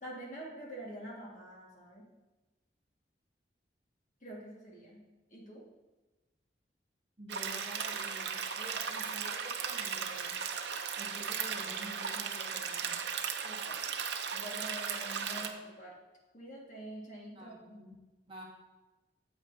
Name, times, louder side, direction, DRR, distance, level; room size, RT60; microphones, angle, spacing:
voice 1, 0.0-2.1 4.2-5.0 5.3-5.6 13.4-13.8 14.3-16.0 16.3-17.8, right 1 dB, 45° left, -3 dB, 1.7 m, -46 dB
voice 2, 7.2-10.4 11.0-13.0 17.3-17.9 18.3-18.4, right 1 dB, 30° right, -3 dB, 1.2 m, -49 dB
sound 1, 7.3-15.5, right 6 dB, 70° right, 0.6 m, -36 dB
8.3 x 8.0 x 2.7 m, 1.1 s
head